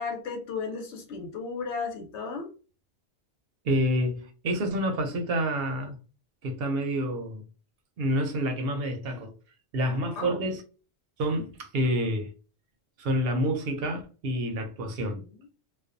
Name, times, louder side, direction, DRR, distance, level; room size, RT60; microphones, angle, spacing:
voice 1, 0.0-2.5 10.2-10.5 15.2-15.4, left 5 dB, 85° left, 1.0 m, -35 dB
voice 2, 3.6-6.0 6.4-7.4 8.0-9.3 9.7-10.6 11.2-12.3 13.0-15.2, equal, 65° right, 0.7 m, -28 dB
2.4 x 2.1 x 2.5 m
omnidirectional pair, 1.1 m